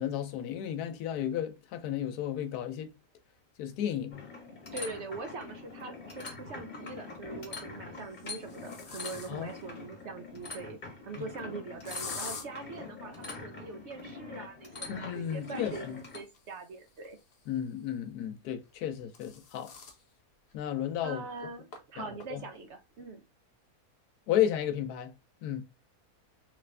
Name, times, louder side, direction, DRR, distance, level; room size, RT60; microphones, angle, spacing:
voice 1, 0.0-2.9 3.6-4.3 9.3-9.6 14.9-15.7 17.5-19.7 20.5-21.2 22.0-22.4 24.3-25.1 25.4-25.6, left 10 dB, 85° left, 1.2 m, -33 dB
sound 1, 4.1-16.2, left 3 dB, 30° left, 1.2 m, -44 dB
voice 2, 4.7-10.8 11.0-15.9 16.1-17.2 21.0-23.2, right 3 dB, 65° right, 0.7 m, -42 dB
sound 2, 5.5-5.6 7.0-7.4 8.0-9.6 11.8-12.5 15.0-17.7 18.7-20.0 20.5-20.6 20.9-21.0 21.7-21.8 22.2-22.6, left 5 dB, 55° left, 0.8 m, -46 dB
3.3 x 2.5 x 3.2 m
omnidirectional pair, 1.6 m